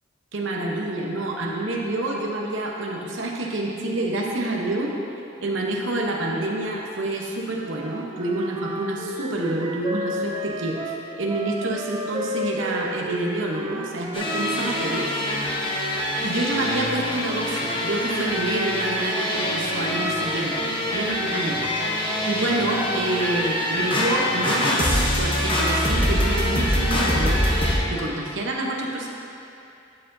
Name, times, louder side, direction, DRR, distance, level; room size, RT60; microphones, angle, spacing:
voice 1, 0.3-4.9 5.4-15.1 16.2-27.4 27.8-29.1, right 2 dB, 65° right, -1 dB, 0.9 m, -28 dB
Wind instrument woodwind instrument, 7.7-15.1, equal, 25° right, 0.4 m, -32 dB
sound 1, 14.1-27.8, left 1 dB, 25° left, 0.9 m, -24 dB
11.5 x 5.8 x 2.7 m, 2.7 s
head